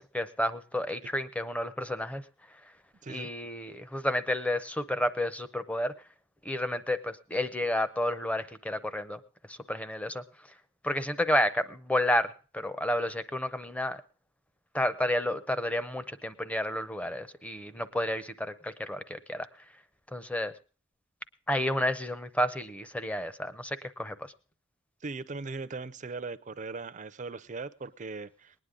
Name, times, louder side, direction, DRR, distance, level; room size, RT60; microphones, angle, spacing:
voice 1, 0.0-2.2 3.1-5.9 6.4-9.2 9.5-10.2 10.8-14.0 14.7-19.5 20.1-20.5 21.5-24.3, left 1 dB, 5° left, 12 dB, 0.7 m, -31 dB
voice 2, 25.0-28.5, right 3 dB, 35° right, 13 dB, 0.5 m, -39 dB
20.0 x 9.8 x 3.7 m, 0.36 s
head